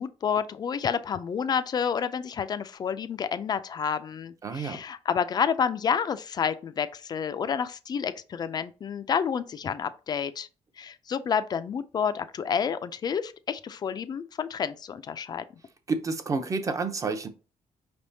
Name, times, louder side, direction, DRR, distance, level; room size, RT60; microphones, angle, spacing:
voice 1, 0.0-10.5 10.8-15.4, left 7 dB, 35° left, 0.4 m, -29 dB
voice 2, 4.4-4.8 15.9-17.3, right 4 dB, 30° right, 0.6 m, -29 dB
5.2 x 3.4 x 2.7 m
cardioid pair, 155°, 12 cm